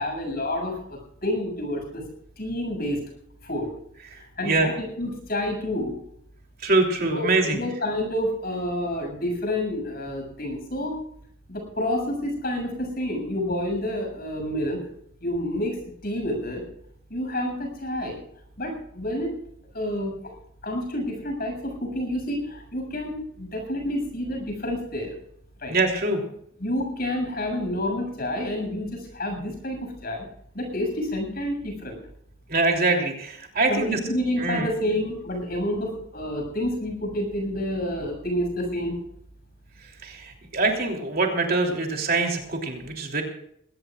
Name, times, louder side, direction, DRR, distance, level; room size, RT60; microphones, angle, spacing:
voice 1, 0.0-2.0 2.4-3.0 3.4-3.7 4.2-6.0 7.0-11.0 11.5-14.9 15.2-16.6 17.1-18.2 18.6-19.3 19.7-20.2 20.6-25.2 25.6-25.7 26.6-30.3 30.5-32.0 33.7-39.0, left 1 dB, 45° left, 3 dB, 7.2 m, -29 dB
voice 2, 4.1-4.7 6.6-7.6 25.7-26.2 32.5-34.0 34.4-34.7 40.0-43.2, right 3 dB, 45° right, 2 dB, 3.2 m, -24 dB
21.5 x 17.5 x 2.5 m, 0.69 s
head